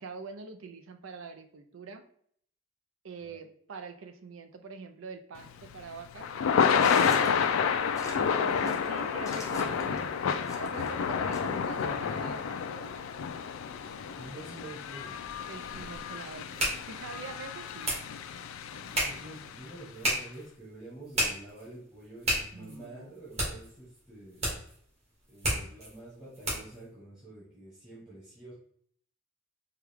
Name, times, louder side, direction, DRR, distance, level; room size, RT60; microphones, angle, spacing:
voice 1, 0.0-2.0 3.0-7.2 8.2-13.1 15.5-18.0 22.5-23.2, right 4 dB, 75° right, 7 dB, 0.5 m, -44 dB
Thunder / Rain, 5.4-19.7, left 6 dB, 85° left, 0.3 m, -30 dB
sound 1, 6.7-10.9 11.3-11.8, left 2 dB, 15° left, 0.7 m, -43 dB
voice 2, 14.2-15.2 18.8-24.5 25.3-28.5, right 1 dB, 5° right, -9 dB, 1.1 m, -47 dB
sound 2, 15.2-26.8, equal, 35° right, 1.7 m, -35 dB
4.7 x 2.3 x 3.4 m, 0.62 s
head